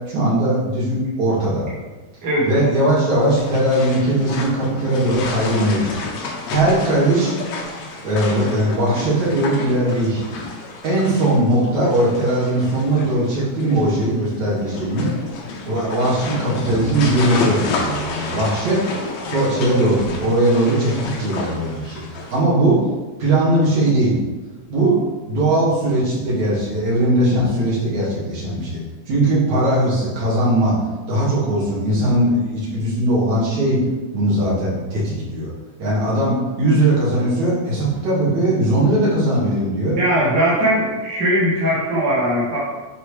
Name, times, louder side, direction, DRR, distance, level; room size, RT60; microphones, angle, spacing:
voice 1, 0.1-1.7 2.4-6.0 6.5-7.3 8.0-10.4 10.8-15.1 15.6-18.8 19.2-22.0 22.3-22.8 23.2-24.2 24.7-25.0 25.3-28.8 29.1-30.8 31.1-33.8 34.1-35.5 35.8-40.0, right 1 dB, 65° right, -8 dB, 3.6 m, -19 dB
sound 1, 3.1-22.4, left 3 dB, 70° left, 1.9 m, -30 dB
voice 2, 40.0-42.6, equal, 40° right, -7 dB, 2.2 m, -19 dB
11.0 x 4.4 x 3.3 m, 1.2 s
omnidirectional pair, 3.5 m